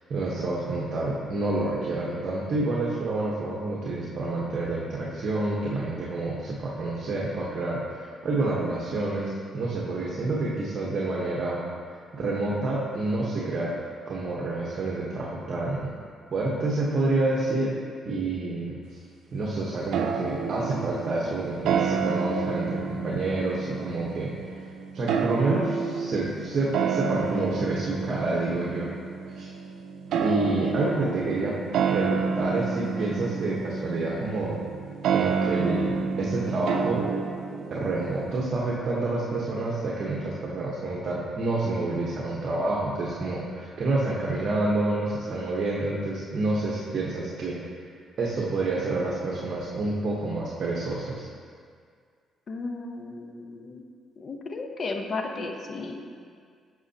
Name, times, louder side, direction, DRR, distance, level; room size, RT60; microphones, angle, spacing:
voice 1, 0.1-11.6 12.1-13.7 14.1-15.9 16.3-17.8 18.0-18.7 19.3-24.3 24.9-28.9 29.3-29.5 30.2-31.5 31.9-34.6 35.1-37.0 37.7-47.6 48.2-51.3, right 2 dB, 55° right, -4 dB, 1.1 m, -28 dB
sound 1, 19.9-38.4, right 6 dB, 75° right, 0.5 m, -29 dB
voice 2, 52.5-53.8 54.2-56.0, left 3 dB, 50° left, 3 dB, 0.9 m, -34 dB
11.0 x 6.4 x 2.9 m, 2.1 s
cardioid pair, 90°, 0 cm